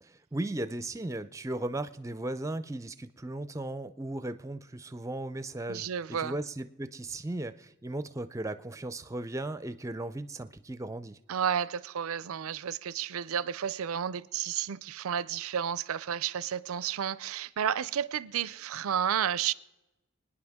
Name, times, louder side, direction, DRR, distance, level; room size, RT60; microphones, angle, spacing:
voice 1, 0.0-5.9 6.2-11.2, right 2 dB, 15° right, 0.4 m, -36 dB
voice 2, 5.7-6.4 11.3-19.5, right 8 dB, 75° right, 0.4 m, -31 dB
26.0 x 9.9 x 3.6 m
head